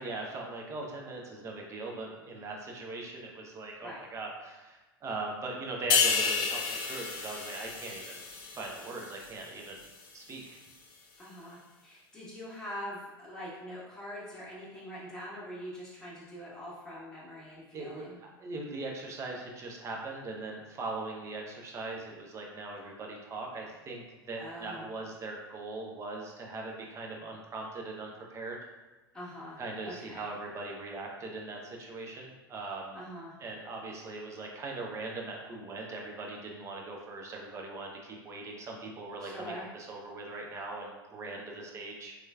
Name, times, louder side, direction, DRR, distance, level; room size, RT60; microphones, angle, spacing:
voice 1, 0.0-8.3 8.5-9.9 10.1-10.6 17.7-28.6 29.6-33.0 33.4-42.1, right 3 dB, 25° right, 0 dB, 0.6 m, -40 dB
sound 1, 5.9-9.4 9.8-10.0, left 5 dB, 40° left, 0.6 m, -31 dB
voice 2, 11.2-18.2 24.4-24.9 29.1-30.3 32.9-33.4 39.2-39.6, equal, 5° left, -8 dB, 1.3 m, -43 dB
3.3 x 3.1 x 2.3 m, 1.1 s
figure-of-eight pair, 85°, 13 cm